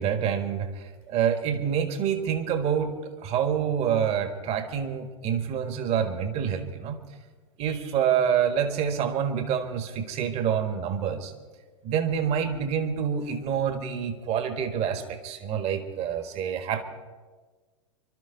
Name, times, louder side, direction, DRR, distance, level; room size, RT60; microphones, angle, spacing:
voice 1, 0.0-7.0 7.6-11.3 11.8-16.8, right 8 dB, 40° right, 8 dB, 1.7 m, -27 dB
26.5 x 12.5 x 4.0 m, 1.4 s
figure-of-eight pair, 90°, 17 cm